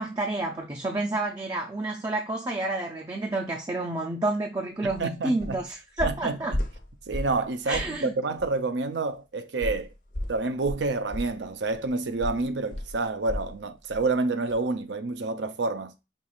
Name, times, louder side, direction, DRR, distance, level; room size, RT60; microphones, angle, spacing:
voice 1, 0.0-6.5 7.7-8.1, right 2 dB, 20° right, 0.4 m, -29 dB
sound 1, 4.8-5.0 5.4-5.6 6.0-7.4 7.7-8.0 8.4-8.5 9.6-13.6 13.9-14.1 14.5-14.6, left 1 dB, 45° left, 0.8 m, -34 dB
voice 2, 5.0-5.6 6.0-6.6 7.1-9.9 10.3-15.9, right 3 dB, 85° right, 0.6 m, -28 dB
5.5 x 3.0 x 2.4 m
head